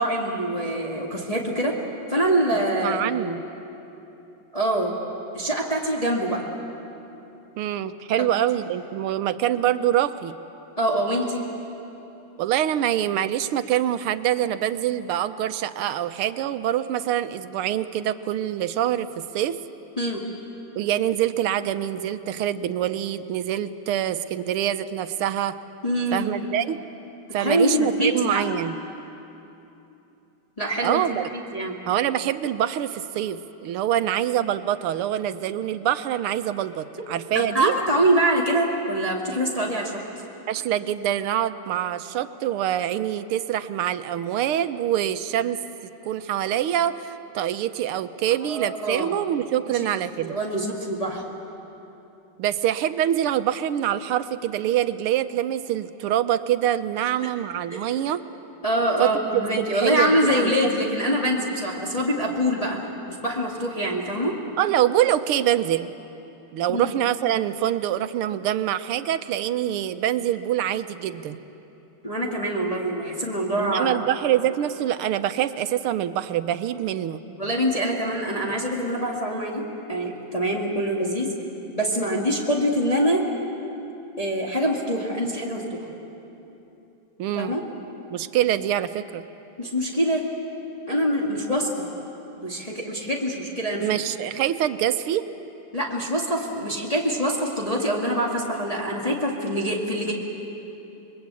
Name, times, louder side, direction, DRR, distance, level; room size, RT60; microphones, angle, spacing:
voice 1, 0.0-1.8 2.1-3.3 4.5-4.9 5.3-6.5 8.2-8.3 10.8-11.4 20.0-20.2 25.8-26.3 27.4-28.4 30.6-31.0 31.5-31.8 37.3-39.9 48.4-49.2 49.7-49.9 50.2-51.2 57.2-57.3 57.7-57.9 58.6-62.8 63.1-64.4 66.7-67.0 72.0-74.0 77.4-81.3 81.7-83.2 84.2-85.8 87.3-87.6 89.6-90.2 90.9-91.9 92.4-93.9 95.7-100.1, right 1 dB, 15° left, -2 dB, 2.1 m, -24 dB
voice 2, 2.5-3.4 7.6-10.4 12.4-19.6 20.7-25.6 26.1-26.8 27.3-28.8 30.8-31.3 31.9-37.7 40.5-45.6 46.0-50.4 52.4-58.2 59.0-60.5 64.6-65.9 66.5-71.4 73.6-77.2 87.2-87.5 88.1-89.2 93.8-95.3, right 11 dB, 85° right, 11 dB, 1.7 m, -25 dB
28.5 x 22.0 x 8.4 m, 3.0 s
omnidirectional pair, 2.4 m